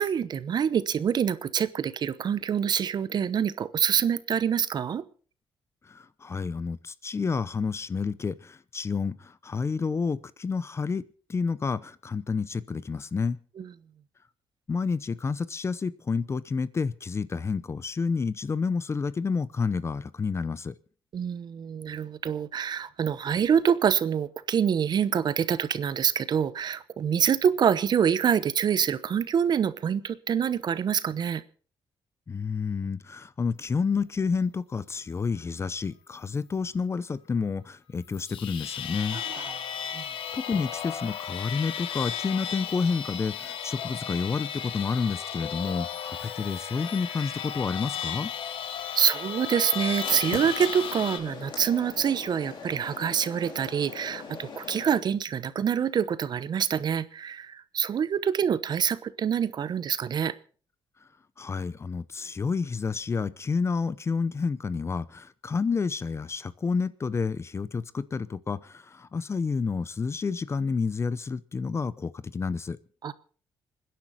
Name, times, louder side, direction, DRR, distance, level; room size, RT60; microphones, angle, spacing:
voice 1, 0.0-5.0 13.6-13.7 21.1-31.4 39.1-39.5 39.9-40.0 48.9-60.3 73.0-73.1, right 8 dB, 50° right, 15 dB, 0.9 m, -26 dB
voice 2, 5.8-11.0 11.3-13.4 14.7-20.7 32.3-39.2 40.3-48.3 61.4-72.8, left 5 dB, 30° left, 17 dB, 0.7 m, -29 dB
sound 1, 38.0-51.2, left 9 dB, 80° left, 1.4 m, -35 dB
sound 2, 50.0-55.0, left 5 dB, 60° left, 4.3 m, -40 dB
27.0 x 10.5 x 4.2 m, 0.41 s
cardioid pair, 110°, 9 cm